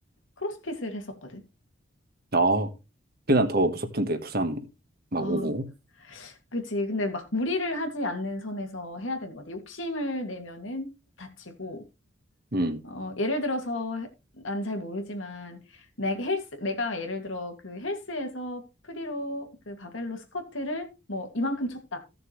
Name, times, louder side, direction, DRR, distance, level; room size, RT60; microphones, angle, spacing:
voice 1, 0.4-1.4 5.2-5.5 6.0-10.9 11.2-11.8 12.8-14.1 14.4-22.0, left 1 dB, 85° left, 2.4 m, -32 dB
voice 2, 2.3-2.7 3.3-4.6 5.1-5.6 12.5-12.8, right 2 dB, 50° right, 1.5 m, -25 dB
15.5 x 6.7 x 3.2 m
head